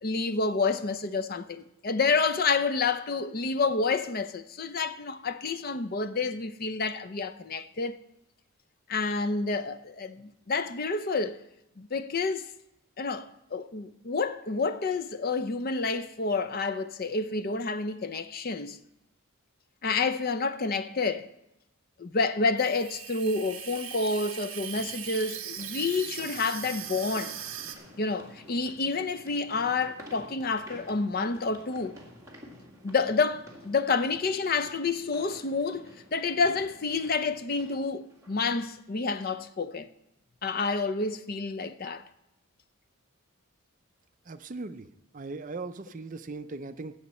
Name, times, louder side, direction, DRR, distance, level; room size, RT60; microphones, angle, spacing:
voice 1, 0.0-8.0 8.9-11.4 11.8-12.5 13.0-18.8 19.8-21.3 22.0-27.3 28.0-32.0 32.8-39.9 40.4-42.0, left 4 dB, 45° left, 0.5 m, -29 dB
Water tap faucet / Sink (filling or washing), 22.6-27.8, right 10 dB, 65° right, 1.2 m, -39 dB
sound 1, 24.7-38.6, equal, 15° right, 1.9 m, -51 dB
voice 2, 44.3-44.9 45.1-46.9, right 3 dB, 35° right, 0.5 m, -38 dB
18.0 x 7.3 x 4.2 m
head